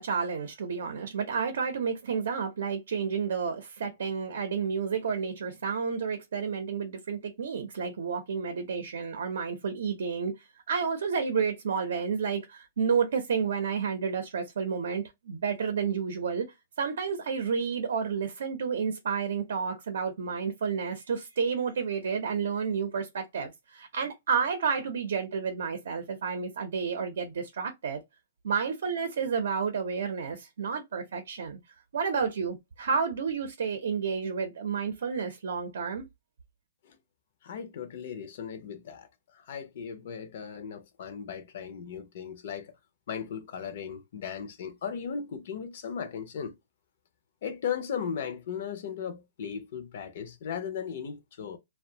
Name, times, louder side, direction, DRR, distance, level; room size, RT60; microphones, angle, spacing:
voice 1, 0.0-16.5 16.8-28.0 28.4-31.6 31.9-36.1, right 6 dB, 80° right, 0.5 m, -30 dB
voice 2, 37.4-39.1 39.3-42.7 43.1-46.6 47.4-51.6, left 7 dB, 55° left, 0.5 m, -37 dB
2.5 x 2.1 x 2.7 m
hypercardioid pair, 165°, 0 cm